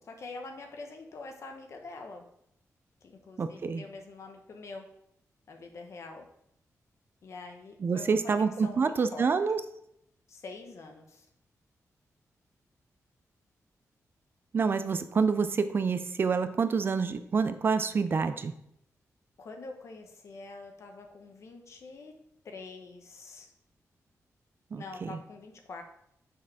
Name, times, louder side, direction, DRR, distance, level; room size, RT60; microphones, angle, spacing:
voice 1, 0.0-2.2 3.0-4.8 5.5-6.3 7.2-9.3 10.3-11.3 19.4-22.1 22.4-23.5 24.8-25.8, left 3 dB, 55° left, 4 dB, 0.9 m, -45 dB
voice 2, 3.4-3.8 7.8-9.6 14.5-18.5 24.7-25.1, right 5 dB, 40° right, 11 dB, 0.4 m, -27 dB
5.9 x 4.6 x 4.7 m, 0.74 s
wide cardioid pair, 165°, 6 cm